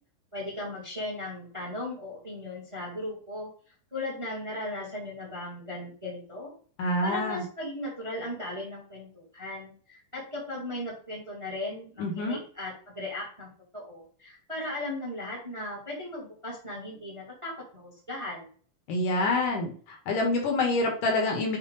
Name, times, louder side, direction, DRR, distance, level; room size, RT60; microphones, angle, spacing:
voice 1, 0.3-3.5 3.9-6.5 7.0-13.5 13.7-18.5, left 1 dB, 10° right, -3 dB, 1.5 m, -37 dB
voice 2, 6.8-7.4 12.0-12.4 18.9-19.7 20.1-21.6, left 2 dB, 70° left, 2 dB, 2.8 m, -26 dB
7.3 x 3.2 x 4.0 m, 0.43 s
omnidirectional pair, 4.1 m